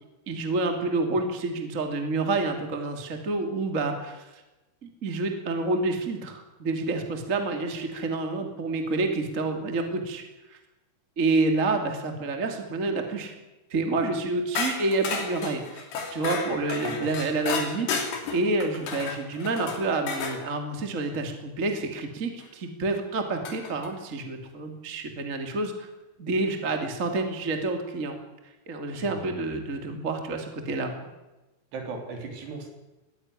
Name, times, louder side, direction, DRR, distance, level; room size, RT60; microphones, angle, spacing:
voice 1, 0.3-4.4 4.8-10.2 10.5-10.6 11.2-13.3 13.7-15.8 16.1-17.9 18.3-25.9 26.2-28.1 28.7-31.1, right 3 dB, 25° right, 4 dB, 2.0 m, -28 dB
sound 1, 14.6-20.4 22.4-22.5 23.5-23.9, left 5 dB, 60° left, 5.1 m, -32 dB
voice 2, 28.9-29.2 31.7-32.7, right 3 dB, 60° right, 3 dB, 5.7 m, -37 dB
21.0 x 15.5 x 9.8 m, 1.1 s
omnidirectional pair, 5.7 m